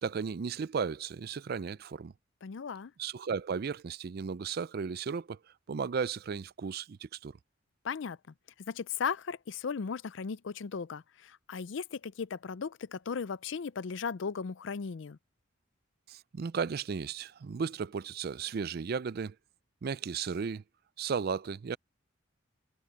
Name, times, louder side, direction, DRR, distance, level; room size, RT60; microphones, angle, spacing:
voice 1, 0.0-2.1 3.0-5.4 5.7-7.4 16.1-19.4 19.8-20.6 21.0-21.8, right 6 dB, 50° right, 0.4 m, -35 dB
voice 2, 2.4-2.9 7.8-8.2 8.6-15.2, left 6 dB, 70° left, 0.5 m, -36 dB
head